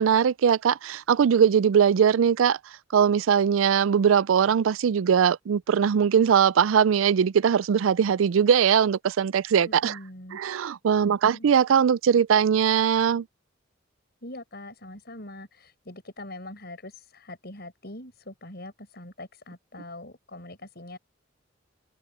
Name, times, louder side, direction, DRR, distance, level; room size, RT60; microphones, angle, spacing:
voice 1, 0.0-2.6 2.9-10.0 10.3-13.2, right 7 dB, 90° right, 0.4 m, -21 dB
voice 2, 9.6-10.4 11.0-11.5 14.2-21.0, left 1 dB, 55° left, 7.7 m, -43 dB
open air
head